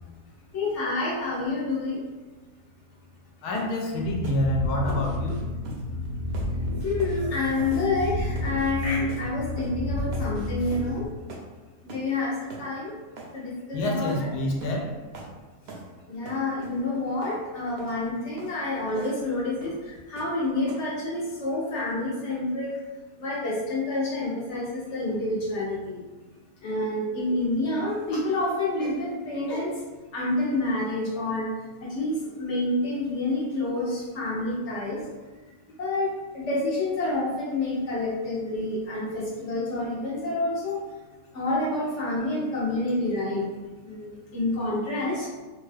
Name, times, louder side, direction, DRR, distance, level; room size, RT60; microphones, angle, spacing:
voice 1, 0.5-2.0 6.8-11.1 11.8-12.9 13.3-14.3 16.1-22.7 23.2-26.0 26.6-29.8 30.1-31.5 31.8-35.1 35.8-40.8 41.3-43.5 43.8-45.3, left 2 dB, 60° left, -5 dB, 0.8 m, -28 dB
voice 2, 3.4-5.4 13.7-14.9, left 1 dB, 80° left, 0 dB, 1.1 m, -27 dB
sound 1, 3.5-3.8 4.2-4.4 4.9-5.1 5.6-5.8 6.3-6.5 7.0-7.2 7.7-8.0 8.3-8.6 9.1-9.3 9.6-9.8 10.1-10.3 10.7-10.9 11.3-11.5 11.9-12.1 12.5-12.7 13.2-13.3 14.1-14.2 14.6-14.8 15.1-15.3 15.7-15.9 16.2-16.8 17.2-17.4 17.8-17.9 18.4-18.5 19.0-19.2 19.6-19.8 20.2-20.4 20.7-21.0, right 3 dB, 70° right, 0.6 m, -42 dB
sound 2, 4.0-11.1, left 2 dB, 90° right, 1.1 m, -31 dB
2.8 x 2.3 x 3.2 m, 1.3 s
omnidirectional pair, 1.6 m